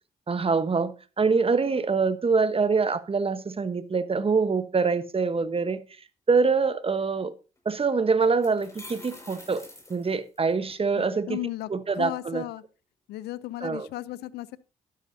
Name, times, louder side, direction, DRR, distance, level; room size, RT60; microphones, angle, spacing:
voice 1, 0.3-5.8 6.3-7.3 7.6-9.6 9.9-11.4 11.7-12.4 13.6-13.9, right 4 dB, 35° right, 1.1 m, -25 dB
sound 1, 7.6-7.7 8.2-10.7, left 2 dB, 15° left, 5.5 m, -46 dB
voice 2, 10.9-12.6 13.1-14.6, left 15 dB, 80° left, 0.6 m, -35 dB
12.0 x 10.5 x 2.7 m
hypercardioid pair, 50°, 17 cm